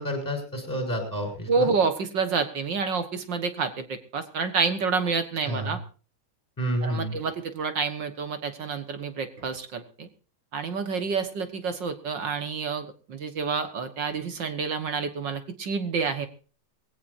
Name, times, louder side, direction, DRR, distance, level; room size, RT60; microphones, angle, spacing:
voice 1, 0.0-1.7 5.5-5.8 6.6-7.2, equal, 5° left, 4 dB, 6.2 m, -30 dB
voice 2, 1.5-5.8 6.8-10.1 10.5-16.3, right 5 dB, 50° right, 10 dB, 1.4 m, -28 dB
21.5 x 16.5 x 2.6 m, 0.36 s
omnidirectional pair, 3.5 m